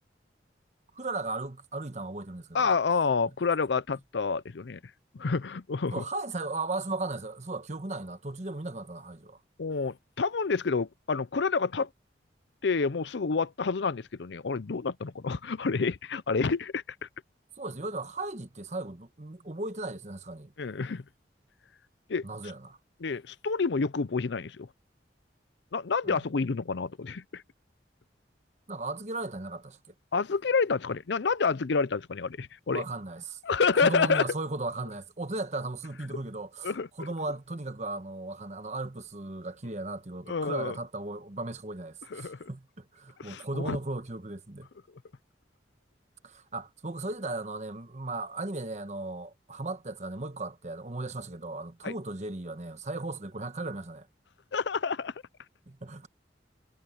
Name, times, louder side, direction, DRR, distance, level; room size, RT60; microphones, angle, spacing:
voice 1, 0.9-2.7 5.9-9.4 17.6-20.5 22.2-22.8 26.0-26.2 28.7-29.9 32.7-33.4 33.7-44.7 46.2-54.1 55.7-56.1, right 2 dB, 40° right, 1.2 m, -36 dB
voice 2, 2.5-4.8 5.1-6.0 9.6-11.9 12.6-17.1 20.6-21.0 22.1-22.2 23.0-24.7 25.7-27.4 30.1-32.8 33.4-34.2 36.6-37.1 40.3-40.8 42.1-42.5 43.2-43.8 51.8-51.9 54.5-55.1, left 4 dB, 75° left, 0.6 m, -28 dB
head